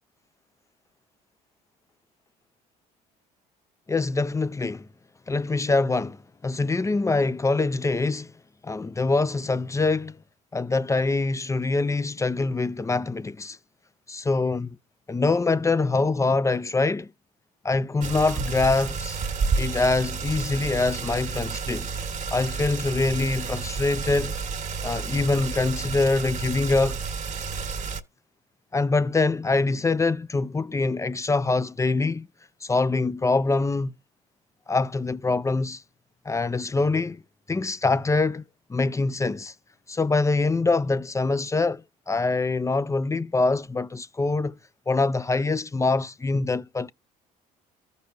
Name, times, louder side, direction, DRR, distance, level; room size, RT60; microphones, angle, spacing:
voice 1, 3.9-4.9 5.3-8.3 8.6-10.2 10.5-13.6 14.1-14.8 15.1-17.1 17.6-19.2 19.6-21.9 22.3-24.3 24.8-27.0 28.7-32.3 32.6-33.9 34.7-35.8 36.3-37.2 37.5-38.4 38.7-39.5 39.9-44.6 44.9-46.9, left 3 dB, 15° left, 0.4 m, -24 dB
sound 1, 18.0-28.0, right 5 dB, 40° right, 1.4 m, -30 dB
14.5 x 5.3 x 2.3 m
hypercardioid pair, 70°, 19 cm